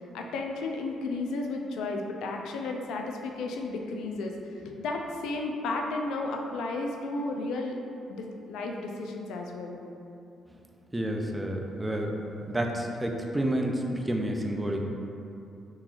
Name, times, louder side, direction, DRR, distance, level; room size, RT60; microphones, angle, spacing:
voice 1, 0.1-4.3 4.7-7.8 8.1-9.8, left 3 dB, 85° left, 2 dB, 0.3 m, -33 dB
voice 2, 10.9-12.1 12.5-14.8, right 1 dB, 15° right, 2 dB, 0.4 m, -29 dB
3.7 x 2.9 x 2.4 m, 2.7 s
cardioid pair, 90°, 0 cm